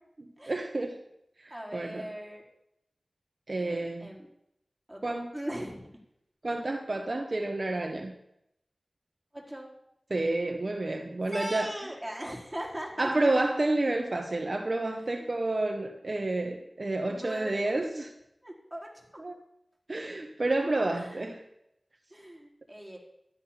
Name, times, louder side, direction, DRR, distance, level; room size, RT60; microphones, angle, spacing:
voice 1, 0.5-1.0 1.4-2.1 3.5-4.1 5.0-5.3 6.4-8.1 10.1-11.7 13.0-18.1 19.2-19.3 19.9-21.4, right 2 dB, 50° right, 4 dB, 1.2 m, -30 dB
voice 2, 1.5-2.4 3.5-4.3 4.9-5.0 5.3-5.9 9.3-9.7 11.3-13.1 14.8-15.3 17.1-17.6 18.4-18.9 20.9-21.3 22.1-23.0, right 1 dB, 10° right, -3 dB, 4.4 m, -39 dB
12.5 x 11.0 x 5.9 m, 0.80 s
wide cardioid pair, 50°, 0 cm